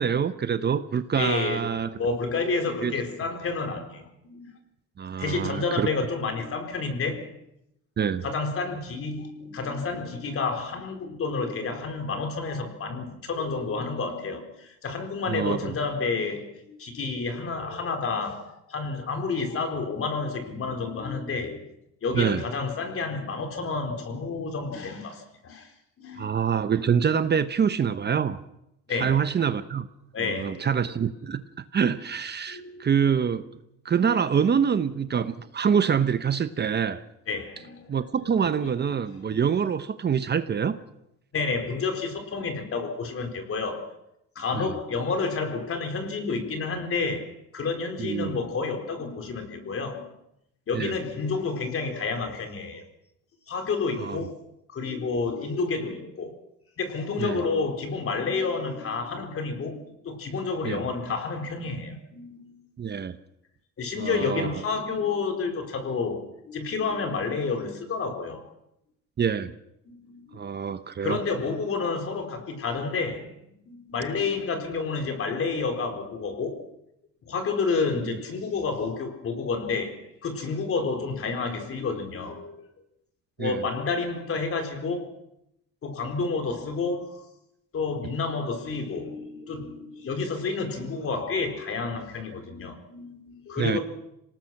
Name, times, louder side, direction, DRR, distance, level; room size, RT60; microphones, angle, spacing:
voice 1, 0.0-1.9 2.8-2.9 5.0-5.9 8.0-8.2 15.3-15.7 22.1-22.4 26.2-28.4 29.0-29.9 30.2-33.4 33.8-37.0 37.9-40.8 44.5-44.7 48.0-48.4 50.7-50.9 54.0-54.3 57.2-57.4 60.6-60.8 62.8-63.2 64.0-64.5 69.2-69.5 70.3-71.2 83.4-83.6 93.6-93.8, right 7 dB, 35° right, 0.9 m, -25 dB
voice 2, 1.2-4.5 5.2-7.3 8.1-21.7 22.0-25.7 26.0-26.3 28.9-29.2 30.1-30.8 32.5-32.9 37.3-38.0 38.4-38.7 39.3-39.4 41.3-43.9 44.3-50.1 50.7-52.8 53.5-54.4 54.7-56.4 56.8-62.6 63.8-68.4 69.9-70.5 71.0-73.3 73.7-76.6 77.3-82.7 83.4-85.1 85.8-87.3 87.7-93.8, left 4 dB, 45° left, 4.3 m, -30 dB
27.0 x 18.5 x 6.0 m
cardioid pair, 105°, 31 cm